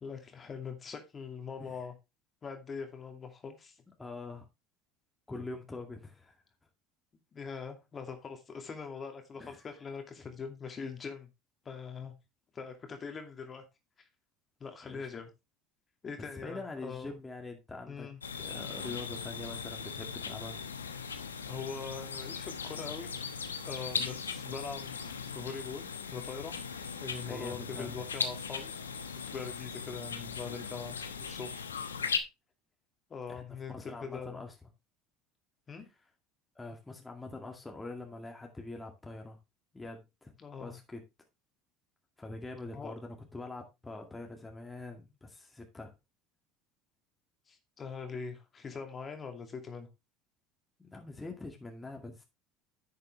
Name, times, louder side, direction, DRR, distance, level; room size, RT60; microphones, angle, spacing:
voice 1, 0.0-1.9 2.4-3.8 7.3-11.3 11.6-12.1 12.5-13.6 14.0-14.1 14.6-15.3 16.0-17.1 17.9-18.2 21.5-23.1 23.6-26.5 27.0-28.7 29.3-31.7 33.1-34.4 35.7-35.9 40.4-40.8 42.7-42.9 47.5-49.9, left 5 dB, 30° left, 2.3 m, -42 dB
voice 2, 4.0-4.5 5.3-6.3 9.4-9.7 14.9-15.1 16.4-18.1 18.4-20.6 27.3-28.0 33.3-34.5 36.6-39.4 39.7-41.0 42.2-45.9 50.8-52.2, left 2 dB, 15° left, 2.1 m, -44 dB
sound 1, 18.2-32.2, left 6 dB, 90° left, 1.0 m, -38 dB
10.5 x 6.8 x 3.3 m
hypercardioid pair, 70°, 0 cm